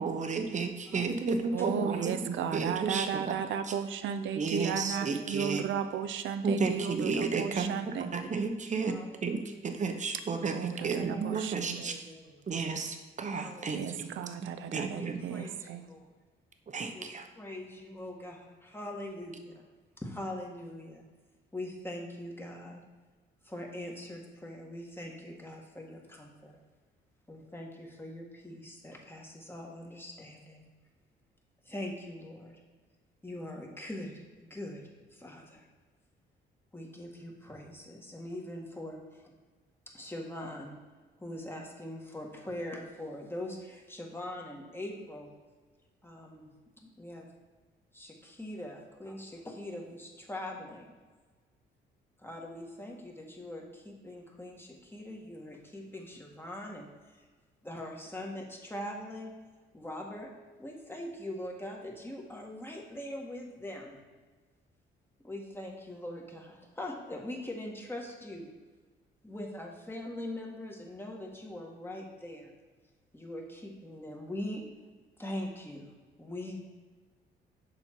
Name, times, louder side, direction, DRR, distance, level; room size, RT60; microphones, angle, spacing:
voice 1, 0.0-3.3 4.4-5.7 6.4-9.4 9.6-12.0 12.5-14.1 14.4-15.2 16.7-17.3, right 4 dB, 35° right, 6 dB, 0.9 m, -32 dB
voice 2, 0.9-2.1 2.5-2.7 3.7-4.3 4.9-5.1 7.3-7.4 8.9-9.1 9.3-9.6 10.8-11.4 11.7-12.5 13.3-13.9 14.8-16.1 16.9-19.6 20.0-21.0 21.5-22.8 23.4-26.6 27.3-30.7 31.7-32.6 33.2-35.6 36.7-39.3 39.9-40.7 41.2-45.3 46.0-46.5 46.8-47.3 47.9-50.9 52.2-57.2 57.6-59.3 59.7-60.3 60.6-64.0 65.2-68.5 69.2-72.5 73.1-74.6 75.2-75.9 76.2-76.6, left 1 dB, 10° left, 0 dB, 1.6 m, -42 dB
voice 3, 1.5-8.1 10.5-12.0 13.7-15.8, right 8 dB, 75° right, 10 dB, 0.6 m, -34 dB
7.1 x 5.3 x 4.6 m, 1.3 s
cardioid pair, 90°, 20 cm